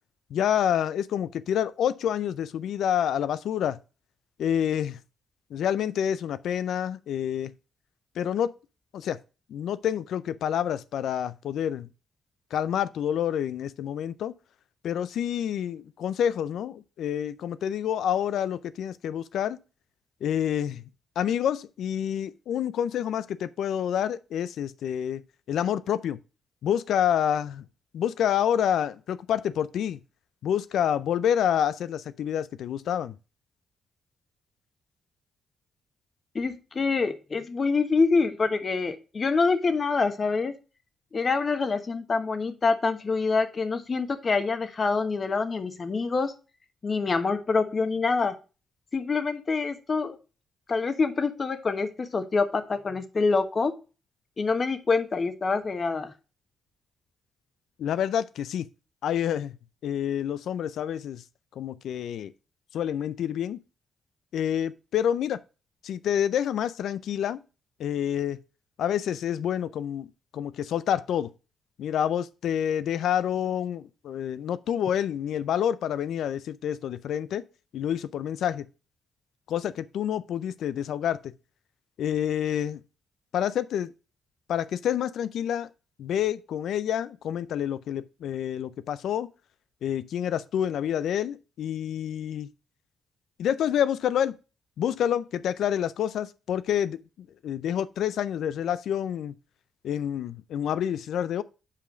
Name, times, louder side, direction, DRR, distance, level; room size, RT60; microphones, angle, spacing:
voice 1, 0.3-3.8 4.4-5.0 5.5-7.5 8.2-8.5 8.9-9.2 9.5-11.9 12.5-14.3 14.8-19.6 20.2-20.8 21.2-26.2 26.6-27.7 27.9-30.0 30.4-33.2 57.8-58.7 59.0-59.6 59.8-61.2 61.6-62.3 62.7-63.6 64.3-65.4 65.8-67.4 67.8-68.4 68.8-70.1 70.3-71.3 71.8-77.4 77.7-78.7 79.5-81.3 82.0-82.8 83.3-83.9 84.5-85.7 86.0-89.3 89.8-92.5 93.4-94.3 94.8-97.0 97.4-99.3 99.8-101.4, left 9 dB, 80° left, 0.4 m, -28 dB
voice 2, 36.3-40.5 41.1-46.3 46.8-48.4 48.9-50.2 50.7-53.7 54.4-56.1, left 4 dB, 45° left, 1.1 m, -26 dB
5.8 x 4.9 x 6.1 m
cardioid pair, 70°, 0 cm